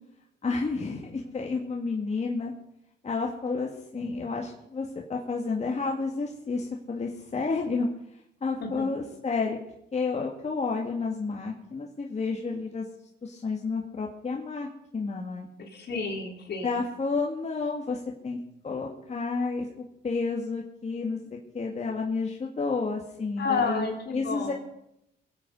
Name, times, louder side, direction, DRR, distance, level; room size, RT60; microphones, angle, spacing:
voice 1, 0.4-2.5 3.0-7.9 8.4-9.6 9.9-12.9 13.2-14.7 14.9-15.5 16.6-18.4 18.6-24.5, left 4 dB, 35° left, 0 dB, 2.0 m, -31 dB
voice 2, 15.6-16.8 23.4-24.5, left 4 dB, 60° left, 1 dB, 3.7 m, -31 dB
22.0 x 8.6 x 5.3 m, 0.80 s
cardioid pair, 90°, 20 cm